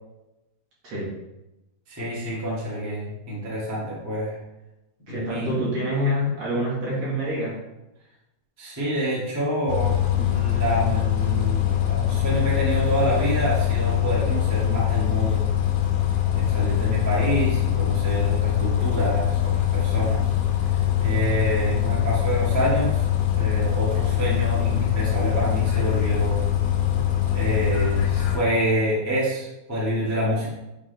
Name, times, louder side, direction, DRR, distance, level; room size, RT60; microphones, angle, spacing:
voice 1, 1.9-4.3 5.1-5.5 8.6-15.4 16.3-20.3 21.0-23.0 23.3-26.3 27.3-30.5, equal, 10° right, -7 dB, 0.9 m, -27 dB
voice 2, 5.1-7.6, equal, 50° right, -7 dB, 2.3 m, -26 dB
Bus, 9.7-28.4, left 11 dB, 85° left, 3.0 m, -23 dB
9.3 x 3.8 x 3.5 m, 0.94 s
omnidirectional pair, 4.7 m